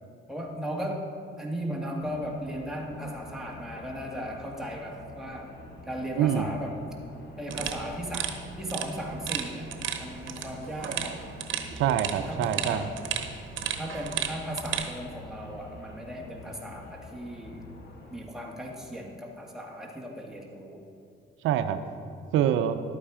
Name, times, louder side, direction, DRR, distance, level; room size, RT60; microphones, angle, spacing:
voice 1, 0.3-1.1 1.4-5.6 5.9-6.8 7.4-11.2 12.1-12.9 13.8-17.7 18.1-20.8, equal, ahead, -1 dB, 1.9 m, -36 dB
sound 1, 2.0-18.2, left 2 dB, 55° left, 1.7 m, -47 dB
voice 2, 6.2-6.5 11.7-12.9 21.4-21.8 22.3-22.8, right 10 dB, 90° right, 10 dB, 0.6 m, -25 dB
sound 2, 7.5-14.9, right 9 dB, 75° right, 1.0 m, -34 dB
12.0 x 8.6 x 5.0 m, 2.5 s
cardioid pair, 90°, 20 cm